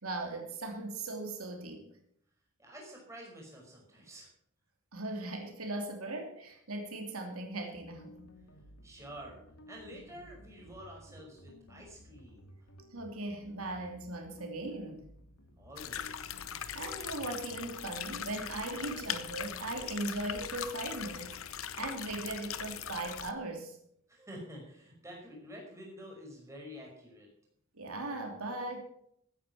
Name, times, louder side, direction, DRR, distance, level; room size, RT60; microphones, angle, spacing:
voice 1, 0.0-1.9 4.9-8.2 12.9-15.0 16.5-23.8 27.7-28.8, right 2 dB, 85° right, 2 dB, 2.9 m, -39 dB
voice 2, 2.6-4.3 8.8-9.4 9.7-12.7 15.6-16.4 24.1-27.3, equal, 15° right, -1 dB, 5.5 m, -49 dB
sound 1, 7.7-17.7, equal, 90° left, 2.4 m, -56 dB
sound 2, 15.8-23.3, left 9 dB, 70° left, 0.9 m, -40 dB
16.0 x 9.7 x 6.2 m, 0.70 s
head